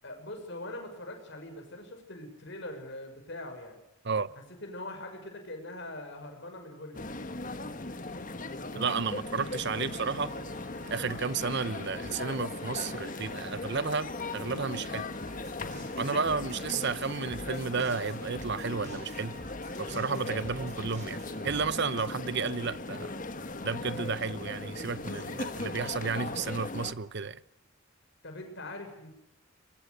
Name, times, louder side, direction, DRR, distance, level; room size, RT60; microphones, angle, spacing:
voice 1, 0.0-3.8 4.6-7.1 10.8-11.0 15.6-15.8 20.0-20.1 28.2-29.1, left 1 dB, 55° left, 6.4 m, -42 dB
sound 1, 6.9-26.9, left 2 dB, 35° left, 1.5 m, -38 dB
voice 2, 8.7-10.3 10.9-15.1 16.0-19.4 19.8-23.1 23.6-27.4, right 5 dB, 50° right, 0.8 m, -32 dB
sound 2, 8.9-22.0, right 1 dB, 35° right, 7.2 m, -51 dB
23.0 x 22.5 x 6.8 m
head